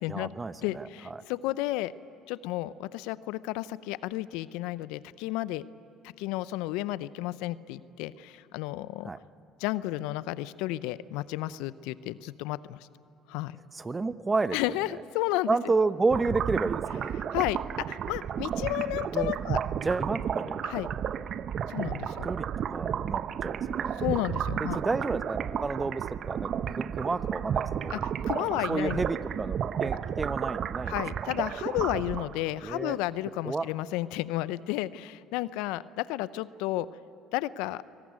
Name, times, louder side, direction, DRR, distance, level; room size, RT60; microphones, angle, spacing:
voice 1, 0.1-1.2 9.0-9.2 13.7-14.6 15.5-17.2 19.1-19.4 19.8-20.6 22.2-22.5 22.7-23.9 24.6-28.0 28.7-31.0 32.6-33.0 33.4-33.7, right 3 dB, 25° right, 14 dB, 0.9 m, -31 dB
voice 2, 0.6-1.9 2.3-5.6 6.0-9.1 9.6-12.8 13.3-13.6 14.5-15.6 17.3-17.6 17.9-19.6 20.6-20.9 21.7-22.3 24.0-24.8 27.9-29.0 30.9-36.9 37.3-37.8, left 16 dB, 75° left, 18 dB, 0.5 m, -32 dB
sound 1, 16.1-32.5, right 8 dB, 50° right, 0.7 m, -32 dB
23.5 x 18.5 x 9.5 m, 3.0 s
hypercardioid pair, 65°, 0 cm